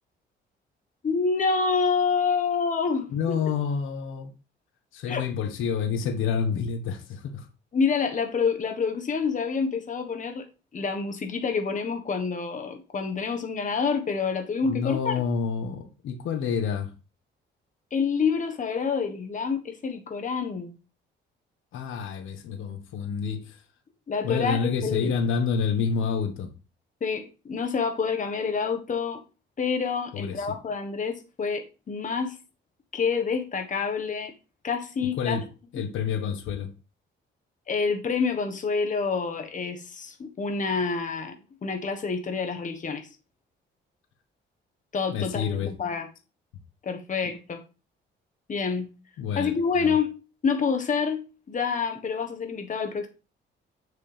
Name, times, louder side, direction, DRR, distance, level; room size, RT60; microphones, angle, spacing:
voice 1, 1.0-3.4 5.1-5.2 7.7-10.4 10.7-15.2 17.9-20.7 24.1-25.1 27.0-29.2 29.6-32.4 32.9-34.3 34.6-35.4 35.7-35.8 37.7-43.1 44.9-46.1 46.8-47.6 48.5-48.9 49.4-50.1 50.4-53.1, left 5 dB, 40° left, 1.4 m, -27 dB
voice 2, 3.1-4.3 4.9-7.5 14.6-16.9 21.7-23.6 24.2-26.5 30.1-30.5 35.0-35.4 35.7-36.7 45.1-45.7 49.2-49.9, left 6 dB, 85° left, 1.4 m, -28 dB
7.6 x 6.5 x 3.4 m
cardioid pair, 90°, 20 cm